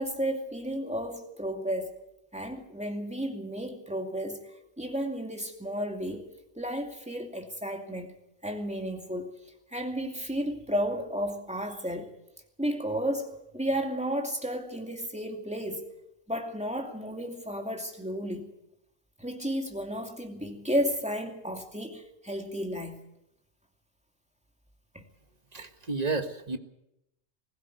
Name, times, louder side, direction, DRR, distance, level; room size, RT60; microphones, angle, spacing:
voice 1, 0.0-1.9 2.3-4.5 4.8-6.2 6.6-8.1 8.4-9.3 9.7-12.1 12.6-15.9 16.3-18.5 19.2-23.0 24.9-25.0, equal, 5° right, 2 dB, 2.5 m, -33 dB
voice 2, 25.5-26.6, right 3 dB, 35° right, 7 dB, 1.6 m, -31 dB
20.5 x 16.0 x 8.1 m, 0.85 s
omnidirectional pair, 1.1 m